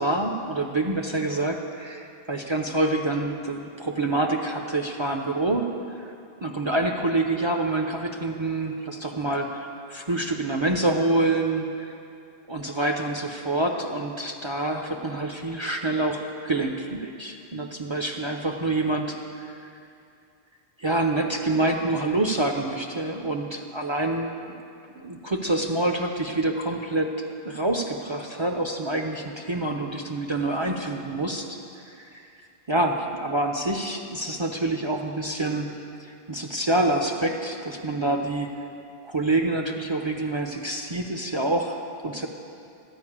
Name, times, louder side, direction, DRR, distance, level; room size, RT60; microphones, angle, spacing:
voice 1, 0.0-5.7 6.0-6.1 6.4-11.9 12.5-19.5 20.8-24.3 25.0-31.6 31.9-32.2 32.7-35.7 36.3-38.5 39.0-42.3, right 2 dB, 35° right, 2 dB, 0.5 m, -27 dB
12.0 x 5.2 x 8.5 m, 2.5 s
omnidirectional pair, 1.1 m